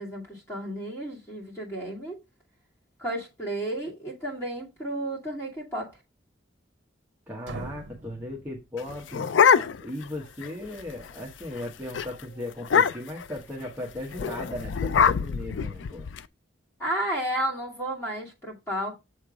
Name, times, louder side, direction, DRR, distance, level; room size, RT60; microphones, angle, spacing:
voice 1, 0.0-2.2 3.0-6.0 16.8-19.0, right 1 dB, 15° left, 2.4 m, -32 dB
voice 2, 7.3-9.3 9.8-16.1, left 1 dB, 10° right, 1.0 m, -37 dB
sound 1, 7.4-9.3, right 3 dB, 75° right, 0.7 m, -42 dB
sound 2, 8.8-10.0 10.4-10.5 10.8-11.1 11.4-11.6 11.9-12.1 12.6-13.2 14.1-16.2, left 7 dB, 80° left, 0.4 m, -23 dB
7.2 x 3.2 x 4.9 m
head